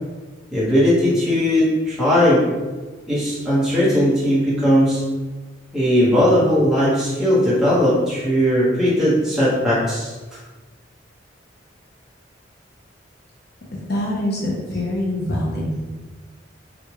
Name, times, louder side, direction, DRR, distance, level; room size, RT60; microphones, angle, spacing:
voice 1, 0.5-2.5 3.1-5.0 5.7-10.1, equal, 5° right, -10 dB, 1.3 m, -18 dB
voice 2, 13.7-15.8, left 1 dB, 60° left, -3 dB, 0.8 m, -24 dB
3.4 x 2.5 x 3.0 m, 1.3 s
head